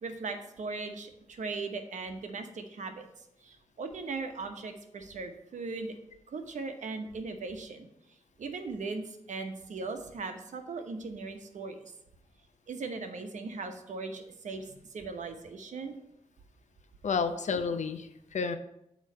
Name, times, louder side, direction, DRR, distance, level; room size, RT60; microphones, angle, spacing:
voice 1, 0.0-6.0 6.3-7.9 8.4-11.9 12.7-16.0, right 4 dB, 75° right, 6 dB, 0.9 m, -39 dB
voice 2, 17.0-18.6, left 5 dB, 75° left, 9 dB, 0.7 m, -31 dB
8.3 x 3.1 x 6.1 m, 0.81 s
cardioid pair, 55°, 13 cm